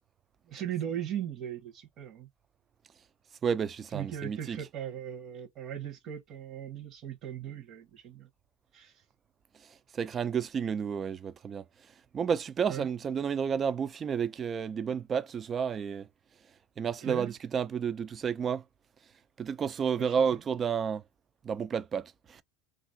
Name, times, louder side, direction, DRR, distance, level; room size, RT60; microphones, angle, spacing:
voice 1, 0.5-2.3 3.9-8.3 8.7-9.0 12.7-12.9 17.0-17.3 20.0-20.1, right 10 dB, 45° right, 0.9 m, -38 dB
voice 2, 3.4-4.6 9.5-16.1 16.8-18.6 19.4-21.0 21.4-22.4, right 7 dB, 25° right, 0.3 m, -31 dB
2.9 x 2.4 x 2.6 m
supercardioid pair, 135°, 0 cm